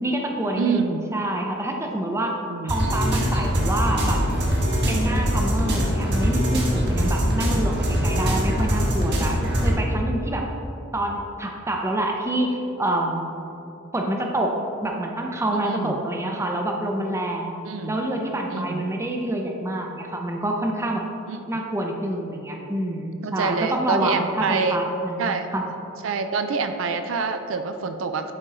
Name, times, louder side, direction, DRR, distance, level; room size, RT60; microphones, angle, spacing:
voice 1, 0.0-4.2 4.9-10.5 10.9-13.2 13.9-14.6 14.8-17.6 17.9-21.0 21.5-25.6, right 1 dB, 15° right, 1 dB, 0.6 m, -27 dB
voice 2, 0.6-1.0 2.5-2.8 15.6-15.9 17.6-18.0 18.5-18.9 21.3-21.4 23.2-24.8 25.2-25.5 26.0-28.3, right 5 dB, 75° right, 7 dB, 0.4 m, -26 dB
sound 1, 2.7-9.7, equal, 55° right, 1.5 m, -22 dB
10.5 x 3.7 x 4.1 m, 2.9 s
head